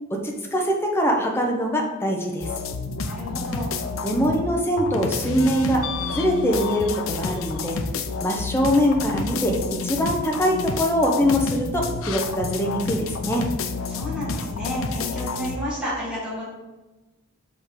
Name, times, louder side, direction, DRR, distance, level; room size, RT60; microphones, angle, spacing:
voice 1, 0.1-2.5 4.0-5.8 6.1-7.8 8.2-9.5 9.8-13.4, equal, 10° left, 0 dB, 0.8 m, -23 dB
sound 1, 2.4-4.5 4.8-15.6, left 4 dB, 85° left, 0.5 m, -29 dB
voice 2, 3.0-3.7 13.9-16.4, equal, 5° right, -8 dB, 2.0 m, -31 dB
5.2 x 3.7 x 4.8 m, 1.2 s
head